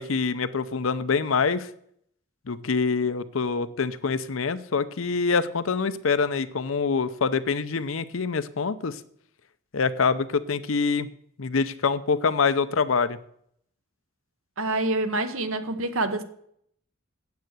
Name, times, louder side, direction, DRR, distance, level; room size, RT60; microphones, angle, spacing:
voice 1, 0.0-1.7 2.5-9.0 9.7-11.1 11.4-13.2, left 5 dB, 80° left, 0.7 m, -25 dB
voice 2, 14.6-16.2, right 2 dB, 85° right, 1.1 m, -26 dB
9.4 x 8.0 x 8.0 m
head